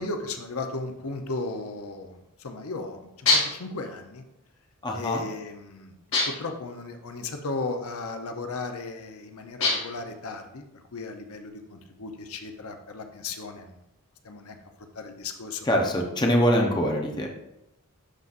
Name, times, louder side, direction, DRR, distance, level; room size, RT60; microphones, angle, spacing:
voice 1, 0.0-4.2 4.9-5.9 6.3-13.8 14.2-14.6 14.9-15.7, left 3 dB, 75° left, 6 dB, 0.7 m, -36 dB
sound 1, 3.3-3.7 6.1-6.6 9.6-10.1, left 3 dB, 60° left, 2.5 m, -24 dB
voice 2, 4.8-5.2 15.6-17.3, equal, 20° left, 1 dB, 0.7 m, -23 dB
11.5 x 4.0 x 2.5 m, 0.88 s
head